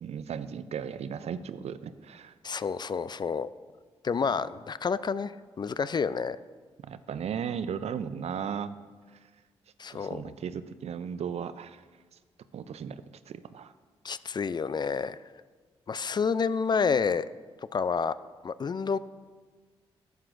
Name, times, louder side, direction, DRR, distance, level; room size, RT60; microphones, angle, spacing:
voice 1, 0.0-2.3 6.8-8.7 9.9-11.8 12.5-13.7, right 7 dB, 60° right, 14 dB, 0.4 m, -36 dB
voice 2, 2.4-3.5 4.0-6.4 9.8-10.3 14.0-15.2 15.9-17.3 17.7-18.1 18.4-19.0, left 5 dB, 35° left, 16 dB, 0.3 m, -29 dB
11.0 x 8.0 x 2.5 m, 1.4 s
hypercardioid pair, 40°, 12 cm